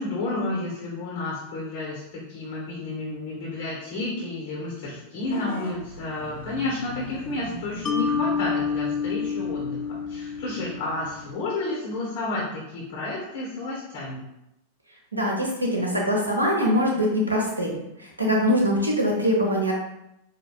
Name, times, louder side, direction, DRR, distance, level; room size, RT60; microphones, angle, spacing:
voice 1, 0.0-14.3, left 2 dB, 50° left, -5 dB, 0.9 m, -31 dB
Vehicle horn car horn honking / Bus, 5.2-11.3, left 1 dB, 80° left, 1.1 m, -42 dB
Mallet percussion, 7.9-11.1, left 6 dB, 25° left, 0.3 m, -28 dB
voice 2, 15.1-17.7 18.0-19.7, equal, 85° right, -2 dB, 0.8 m, -23 dB
4.9 x 2.2 x 2.3 m, 0.86 s
figure-of-eight pair, 90°, 0 cm